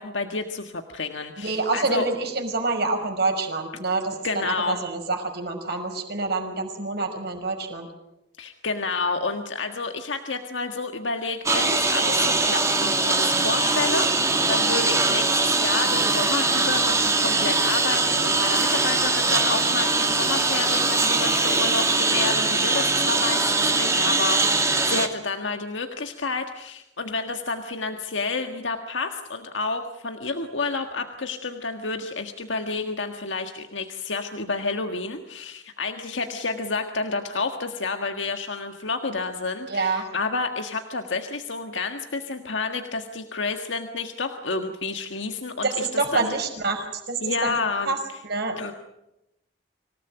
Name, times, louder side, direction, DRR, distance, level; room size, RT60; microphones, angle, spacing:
voice 1, 0.0-2.1 4.2-4.8 8.4-46.4 47.2-47.9 48.6-48.7, left 4 dB, 80° left, 5 dB, 1.6 m, -30 dB
voice 2, 1.4-7.9 21.4-21.6 39.7-40.1 45.6-47.5 47.9-48.0 48.2-48.7, right 3 dB, 60° right, 4 dB, 5.5 m, -27 dB
Engine, 11.5-25.1, right 3 dB, 15° right, 2.4 m, -22 dB
26.0 x 18.0 x 9.1 m, 0.88 s
head